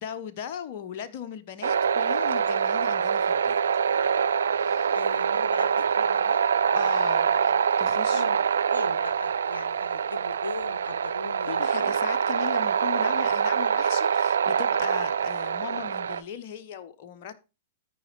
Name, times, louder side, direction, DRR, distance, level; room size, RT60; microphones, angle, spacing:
voice 1, 0.0-3.6 4.6-4.9 6.7-8.2 11.4-17.3, left 9 dB, 50° left, 0.8 m, -38 dB
sound 1, 1.6-16.2, right 7 dB, 70° right, 0.5 m, -25 dB
voice 2, 4.9-7.6 8.1-8.4 8.7-12.0 15.7-15.8, left 3 dB, 80° left, 0.7 m, -40 dB
13.5 x 5.1 x 3.1 m
figure-of-eight pair, 105°, 0 cm